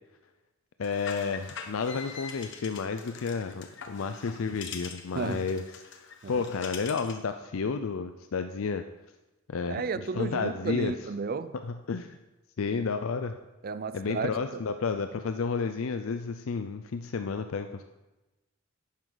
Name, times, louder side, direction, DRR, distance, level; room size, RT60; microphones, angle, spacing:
voice 1, 0.8-5.6 5.9-8.8 9.5-9.8 10.2-10.9 11.6-12.2 12.6-13.3 13.9-17.8, left 5 dB, 75° left, 0.5 m, -31 dB
sound 1, 0.8-7.2, left 6 dB, 60° left, 1.1 m, -44 dB
voice 2, 5.1-5.5 6.2-6.4 9.7-11.5 13.6-14.6, right 4 dB, 45° right, 0.5 m, -33 dB
11.0 x 9.5 x 4.0 m
head